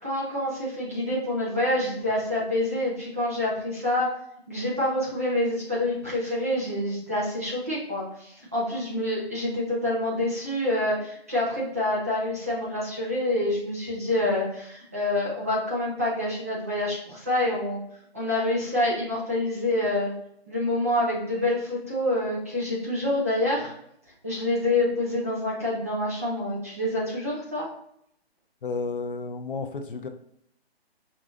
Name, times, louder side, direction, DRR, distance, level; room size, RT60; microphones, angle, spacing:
voice 1, 0.0-4.2 4.5-17.8 18.1-20.1 20.5-23.7 24.2-27.7, left 1 dB, 15° right, -7 dB, 0.5 m, -27 dB
voice 2, 28.6-30.1, left 4 dB, 55° left, 7 dB, 0.5 m, -32 dB
5.0 x 2.6 x 3.0 m, 0.71 s
hypercardioid pair, 165°, 32 cm